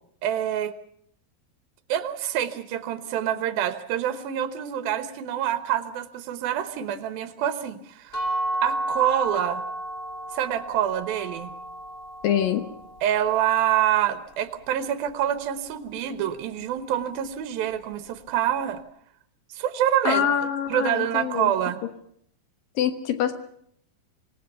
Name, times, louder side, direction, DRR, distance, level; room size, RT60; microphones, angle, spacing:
voice 1, 0.2-0.7 1.9-8.2 8.6-9.6 10.3-11.5 13.0-18.8 19.5-20.2 20.7-21.8, right 11 dB, 90° right, 10 dB, 3.0 m, -26 dB
sound 1, 8.1-13.9, right 1 dB, 15° left, 4.0 m, -32 dB
voice 2, 12.2-12.6 20.0-21.5 22.8-23.3, left 9 dB, 75° left, 8 dB, 3.0 m, -24 dB
26.5 x 19.0 x 6.9 m, 0.68 s
omnidirectional pair, 4.1 m